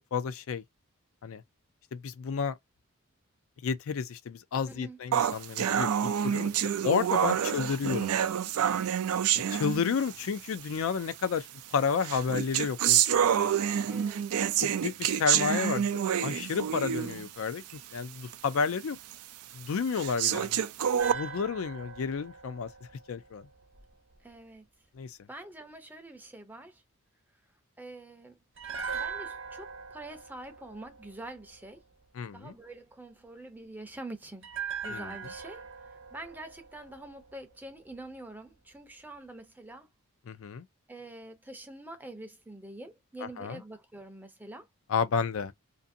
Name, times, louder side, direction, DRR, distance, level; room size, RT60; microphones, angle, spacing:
voice 1, 0.1-0.6 1.2-1.4 1.9-2.6 3.6-6.5 6.8-8.1 9.5-11.5 11.7-13.5 14.6-17.6 17.9-19.0 19.5-20.6 21.1-22.7 23.1-23.5 25.0-25.2 32.2-32.5 34.9-35.1 40.3-40.6 43.4-43.6 44.9-45.5, left 6 dB, 70° left, 0.4 m, -31 dB
voice 2, 4.7-5.0 7.5-7.7 8.7-8.9 13.9-14.2 16.8-17.1 24.2-24.6 25.3-26.8 27.8-28.4 28.9-31.8 32.3-34.5 34.8-39.9 40.9-44.7, right 2 dB, 10° right, 0.5 m, -46 dB
sound 1, 5.1-10.3 11.1-11.2 12.0-17.3 17.7-17.8 18.3-18.4 19.1-19.2 20.0-21.1, right 9 dB, 85° right, 0.4 m, -27 dB
sound 2, 21.0-24.2 28.6-31.8 34.4-37.6 37.9-38.0, right 6 dB, 55° right, 0.9 m, -41 dB
2.6 x 2.4 x 2.6 m
head